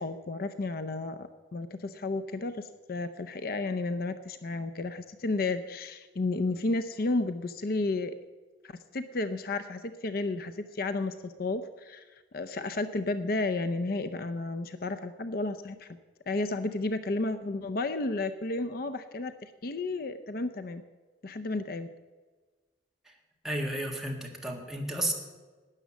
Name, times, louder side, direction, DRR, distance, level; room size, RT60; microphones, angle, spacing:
voice 1, 0.0-8.1 8.6-12.0 12.3-15.9 16.3-20.8 21.2-21.9, left 2 dB, 55° left, 11 dB, 0.5 m, -32 dB
voice 2, 23.4-25.1, right 1 dB, ahead, 0 dB, 1.7 m, -32 dB
12.0 x 9.3 x 7.3 m, 1.4 s
head